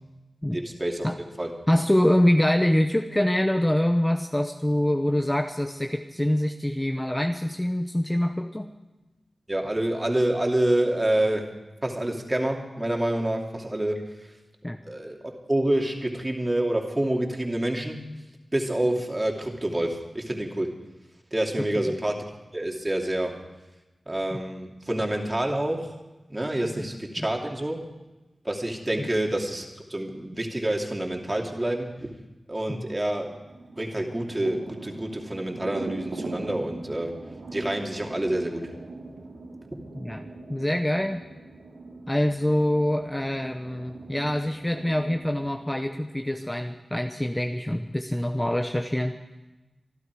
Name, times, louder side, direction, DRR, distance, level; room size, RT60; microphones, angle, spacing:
voice 1, 0.5-1.5 9.5-14.4 14.8-18.1 18.5-20.7 21.3-22.2 22.5-23.4 24.1-25.9 26.3-27.8 28.4-32.1 32.5-33.4 33.8-37.1 37.5-38.7, right 1 dB, 25° right, 1 dB, 2.7 m, -27 dB
voice 2, 1.7-8.6 14.6-14.8 27.2-27.3 29.0-29.1 32.7-32.8 40.0-40.2 40.5-41.2 42.1-49.2, left 1 dB, 15° left, 5 dB, 0.9 m, -25 dB
sound 1, 33.4-45.5, right 3 dB, 85° right, 3.0 m, -41 dB
25.5 x 12.0 x 4.8 m, 1.1 s
wide cardioid pair, 65°, 0 cm